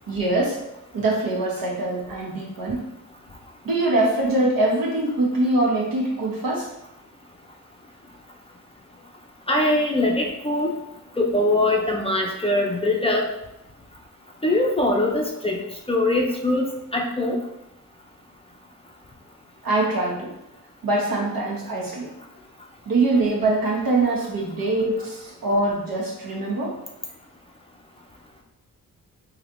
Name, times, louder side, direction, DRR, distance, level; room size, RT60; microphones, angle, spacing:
voice 1, 0.1-0.6 0.9-2.8 3.6-6.7 19.6-20.3 20.8-22.1 22.9-26.7, right 2 dB, 70° right, -2 dB, 1.0 m, -23 dB
voice 2, 9.5-10.7 11.2-13.3 14.4-15.6 15.9-17.4, left 1 dB, 15° left, 0 dB, 0.5 m, -22 dB
3.2 x 2.8 x 2.6 m, 0.87 s
cardioid pair, 75°, 35 cm